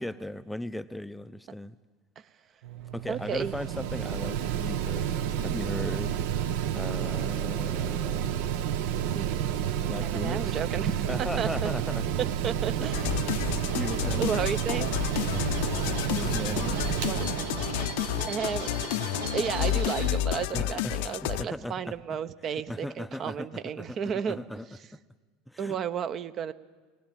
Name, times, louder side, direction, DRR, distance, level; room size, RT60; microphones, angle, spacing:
voice 1, 0.0-1.8 2.9-5.1 5.4-6.2 6.7-8.4 9.9-10.6 11.1-12.2 12.8-13.1 13.5-14.3 16.1-16.8 20.5-22.0 22.7-24.7 24.9-25.0 25.5-25.8, left 1 dB, 5° left, 13 dB, 0.6 m, -37 dB
Mechanical fan, 2.6-18.9, right 9 dB, 65° right, 1.0 m, -30 dB
voice 2, 3.1-3.5 9.1-9.5 10.0-11.7 12.4-13.1 13.6-13.7 14.2-14.9 17.0-17.2 18.3-18.7 19.3-24.4 25.6-26.5, right 7 dB, 40° right, 12 dB, 1.0 m, -32 dB
sound 1, 11.8-20.1, right 2 dB, 85° right, 5.8 m, -40 dB
sound 2, 12.9-21.4, left 13 dB, 65° left, 0.7 m, -31 dB
20.5 x 19.0 x 9.1 m, 1.4 s
hypercardioid pair, 75°, 0 cm